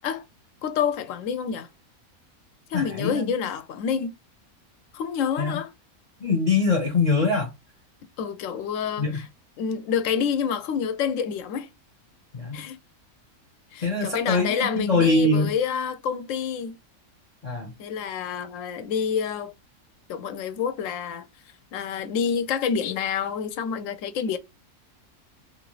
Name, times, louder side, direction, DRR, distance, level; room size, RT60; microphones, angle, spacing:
voice 1, 0.6-1.7 2.7-4.2 4.9-5.7 8.2-9.2 9.6-11.7 12.5-12.8 13.7-16.8 17.8-19.5 20.1-21.3 21.7-24.4, left 7 dB, 70° left, 0.9 m, -28 dB
voice 2, 2.7-3.3 5.4-5.6 6.2-7.5 9.0-9.2 12.3-12.6 13.8-15.5 17.4-17.7, left 3 dB, 45° left, 0.6 m, -23 dB
2.9 x 2.5 x 3.0 m
omnidirectional pair, 1.5 m